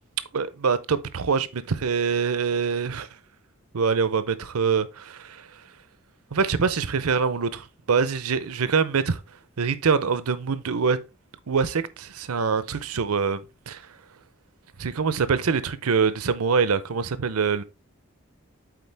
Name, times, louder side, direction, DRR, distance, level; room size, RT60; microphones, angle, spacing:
voice 1, 0.3-3.1 3.7-5.5 6.3-9.2 9.6-11.0 11.5-13.8 14.8-17.6, right 5 dB, 90° right, 0.6 m, -24 dB
8.3 x 4.0 x 3.4 m
head